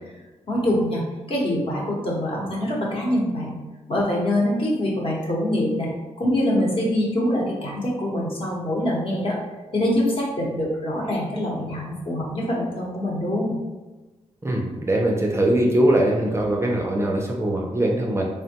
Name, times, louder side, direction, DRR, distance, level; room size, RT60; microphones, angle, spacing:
voice 1, 0.5-1.0 1.3-3.6 3.9-5.9 6.2-9.4 9.7-13.6, left 1 dB, 50° left, -4 dB, 1.0 m, -24 dB
voice 2, 14.4-18.3, right 1 dB, 20° right, -1 dB, 0.4 m, -21 dB
3.3 x 2.2 x 2.8 m, 1.2 s
cardioid pair, 90°, 12 cm